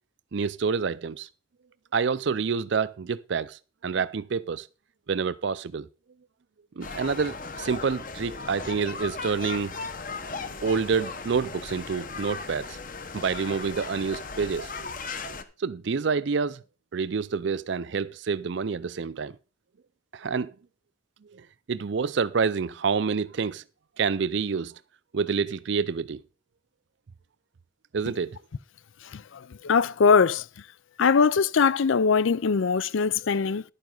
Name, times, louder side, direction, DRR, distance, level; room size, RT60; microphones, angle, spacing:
voice 1, 0.3-1.3 1.9-4.7 5.1-5.9 6.8-9.7 10.6-12.8 13.1-14.7 15.6-16.6 16.9-19.4 20.1-20.5 21.3-23.6 24.0-24.7 25.1-26.2 27.9-28.4, right 5 dB, 60° right, 0.4 m, -28 dB
sound 1, 6.8-15.4, left 4 dB, 40° left, 1.0 m, -37 dB
voice 2, 29.1-30.5 31.0-33.6, left 5 dB, 75° left, 0.5 m, -22 dB
11.5 x 9.3 x 3.9 m
head